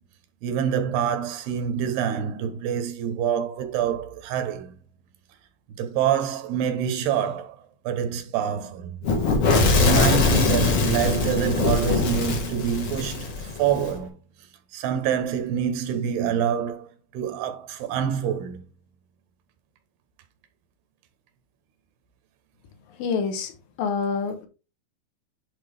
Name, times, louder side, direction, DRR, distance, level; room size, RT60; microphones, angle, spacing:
voice 1, 0.4-4.7 5.8-9.0 9.6-14.2 14.7-16.9 17.1-18.6, right 8 dB, 90° right, 3.0 m, -26 dB
Fire / Explosion, 9.0-13.9, left 3 dB, 50° left, 2.1 m, -22 dB
voice 2, 23.0-23.5 23.8-24.5, left 5 dB, 75° left, 2.4 m, -26 dB
10.0 x 4.0 x 3.4 m
omnidirectional pair, 4.4 m